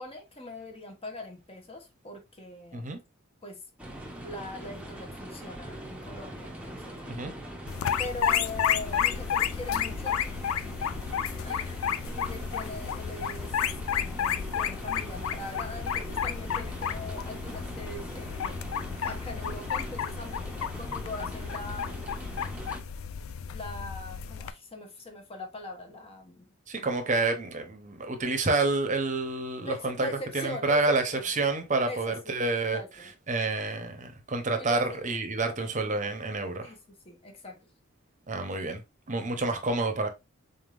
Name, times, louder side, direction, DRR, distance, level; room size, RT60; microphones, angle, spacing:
voice 1, 0.0-2.9 3.4-3.6 4.2-7.2 8.0-10.9 11.4-13.6 13.9-18.6 19.0-22.3 23.5-26.4 29.6-31.2 31.9-32.3 32.7-33.1 34.5-35.1 35.6-36.0 36.6-36.8 37.0-37.6, left 2 dB, 25° left, 1.0 m, -41 dB
sound 1, 3.8-22.8, right 1 dB, 5° right, 0.8 m, -42 dB
sound 2, 7.7-24.5, left 8 dB, 70° left, 0.4 m, -32 dB
voice 2, 26.7-30.1 30.3-32.8 33.3-36.7 38.3-38.8 39.1-40.1, right 3 dB, 35° right, 0.9 m, -28 dB
4.1 x 3.5 x 2.5 m
head